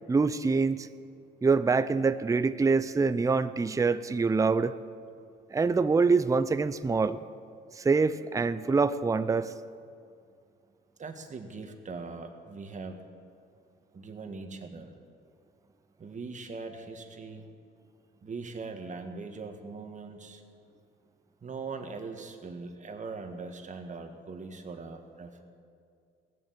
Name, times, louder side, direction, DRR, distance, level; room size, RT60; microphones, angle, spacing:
voice 1, 0.1-0.9 1.4-4.7 5.5-7.2 7.8-9.5, right 4 dB, 15° right, 13 dB, 0.5 m, -25 dB
voice 2, 11.0-13.0 13.9-14.9 16.0-17.4 18.2-20.4 21.4-25.4, right 4 dB, 40° right, 5 dB, 1.6 m, -41 dB
17.0 x 7.5 x 8.4 m, 2.3 s
cardioid pair, 90°, 20 cm